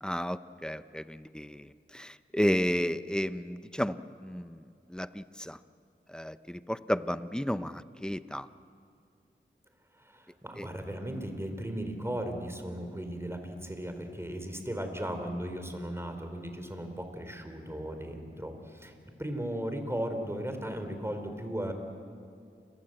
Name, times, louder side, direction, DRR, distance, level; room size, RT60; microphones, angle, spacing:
voice 1, 0.0-4.6 4.9-5.6 6.1-8.5 10.6-10.7, equal, 5° left, 12 dB, 0.8 m, -32 dB
voice 2, 10.1-18.9 19.2-21.7, right 1 dB, 10° right, 6 dB, 4.0 m, -36 dB
29.0 x 23.5 x 7.9 m, 2.3 s
wide cardioid pair, 55°, 20 cm